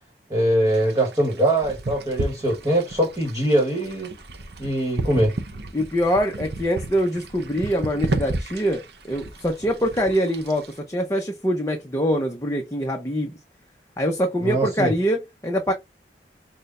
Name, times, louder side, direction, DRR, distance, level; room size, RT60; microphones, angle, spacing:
voice 1, 0.3-4.1 4.6-5.3 14.4-14.9, right 1 dB, 20° right, 1.4 m, -22 dB
sound 1, 0.7-10.8, right 2 dB, 65° right, 0.8 m, -33 dB
voice 2, 5.7-13.3 14.0-15.7, equal, 15° left, 0.7 m, -24 dB
6.1 x 2.2 x 3.7 m
head